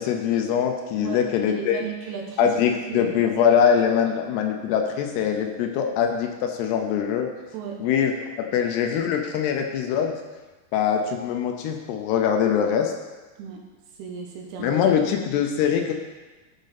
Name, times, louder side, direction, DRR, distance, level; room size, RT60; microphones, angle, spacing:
voice 1, 0.0-1.8 2.4-7.3 7.8-10.1 10.7-12.9 14.6-15.9, left 8 dB, 80° left, 4 dB, 2.7 m, -23 dB
voice 2, 1.0-2.5 2.9-3.2 7.5-7.8 13.4-13.6 14.0-14.8, right 7 dB, 75° right, 1 dB, 2.7 m, -35 dB
13.0 x 5.2 x 4.1 m, 1.2 s
omnidirectional pair, 5.0 m